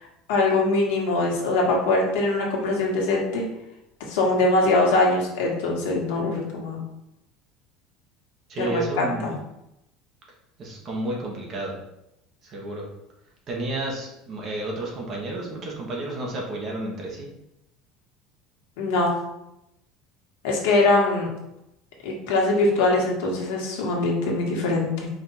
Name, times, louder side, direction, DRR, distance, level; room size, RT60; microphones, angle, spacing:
voice 1, 0.3-3.4 4.1-6.8 8.6-9.4 18.8-19.2 20.4-21.3 22.0-25.1, left 2 dB, 75° left, -1 dB, 1.4 m, -22 dB
voice 2, 8.5-9.3 10.6-11.7 12.4-12.9 13.5-17.3, right 2 dB, 30° right, -1 dB, 1.0 m, -31 dB
5.1 x 2.5 x 4.0 m, 0.85 s
cardioid pair, 175°, 0 cm